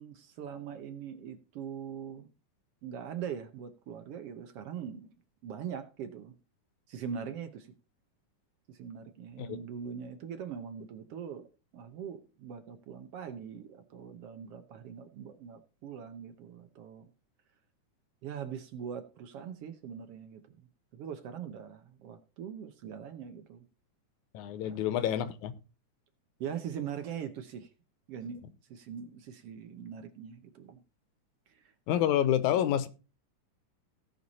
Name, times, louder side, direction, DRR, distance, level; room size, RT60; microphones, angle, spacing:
voice 1, 0.0-2.3 2.8-5.1 5.4-6.3 6.9-7.7 8.7-11.5 11.7-17.1 18.2-20.6 20.9-23.6 24.6-24.8 26.4-27.7 28.1-28.4 28.7-30.8 31.5-31.7, right 8 dB, 70° right, 1.4 m, -42 dB
voice 2, 24.3-25.5 31.9-32.9, left 11 dB, 75° left, 2.1 m, -28 dB
16.5 x 5.7 x 4.1 m
omnidirectional pair, 3.7 m